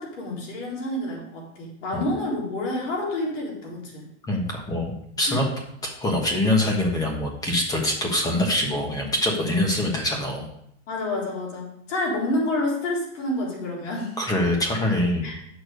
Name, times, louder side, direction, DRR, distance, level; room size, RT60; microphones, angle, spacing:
voice 1, 0.0-4.1 5.3-5.4 10.9-14.1 15.2-15.3, left 1 dB, 80° left, -2 dB, 4.0 m, -28 dB
voice 2, 4.3-5.5 6.0-10.5 14.2-15.2, left 1 dB, 10° left, 1 dB, 1.3 m, -24 dB
8.6 x 6.7 x 5.2 m, 0.72 s
supercardioid pair, 165°, 37 cm